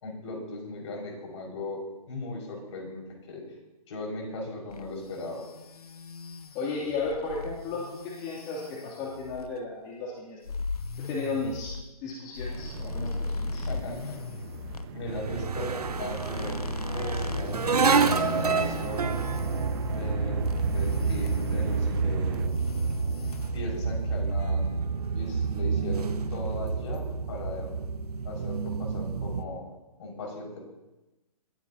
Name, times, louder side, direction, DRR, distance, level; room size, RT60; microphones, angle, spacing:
voice 1, 0.0-3.4 3.9-5.4 13.5-14.2 14.9-19.2 19.9-22.4 23.5-24.7 25.1-27.7 28.2-29.6 30.0-30.6, left 2 dB, 50° left, 0 dB, 5.5 m, -38 dB
sound 1, 4.7-9.6 10.4-14.9 15.8-20.2 20.4-22.1 22.3-23.5, left 3 dB, 75° left, 0.9 m, -38 dB
voice 2, 6.5-10.4 11.0-11.7 12.0-13.6, left 4 dB, 30° left, -5 dB, 2.9 m, -34 dB
sound 2, 12.6-22.5, right 9 dB, 40° right, 1.1 m, -43 dB
sound 3, 15.1-29.4, right 5 dB, 80° right, 1.0 m, -28 dB
21.0 x 15.0 x 2.8 m, 1.0 s
figure-of-eight pair, 130°, 19 cm